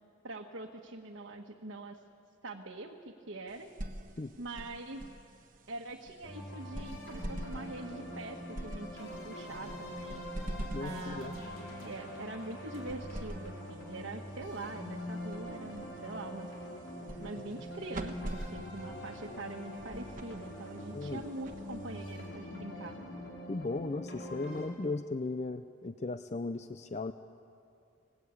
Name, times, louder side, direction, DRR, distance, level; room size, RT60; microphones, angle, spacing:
voice 1, 0.2-2.0 2.4-3.7 4.4-5.1 5.7-11.4 11.8-16.5 17.2-22.9, right 2 dB, 65° right, 1 dB, 1.4 m, -43 dB
sound 1, 3.5-22.4, right 1 dB, 40° right, 1.2 m, -46 dB
sound 2, 6.2-24.7, left 1 dB, 75° left, 5.1 m, -44 dB
voice 2, 10.7-11.3 20.9-21.2 23.5-27.1, left 3 dB, 35° left, 10 dB, 0.5 m, -36 dB
26.0 x 19.0 x 8.4 m, 2.6 s
head